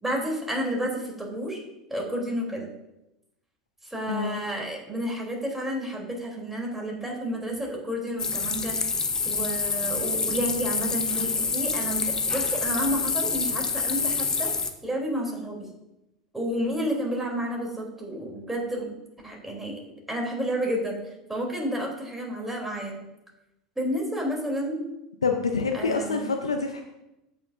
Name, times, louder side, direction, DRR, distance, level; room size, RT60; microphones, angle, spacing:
voice 1, 0.0-1.6 1.9-2.7 3.8-8.8 9.2-14.5 14.8-15.7 16.3-18.9 19.2-19.8 20.1-23.0 23.8-24.8 25.7-26.3, equal, 5° right, -1 dB, 3.2 m, -30 dB
voice 2, 4.0-4.4 25.2-26.8, left 4 dB, 90° left, 4 dB, 0.7 m, -26 dB
sound 1, 8.2-14.7, left 4 dB, 20° left, 0.9 m, -27 dB
15.0 x 5.9 x 2.6 m, 0.91 s
hypercardioid pair, 85°, 3 cm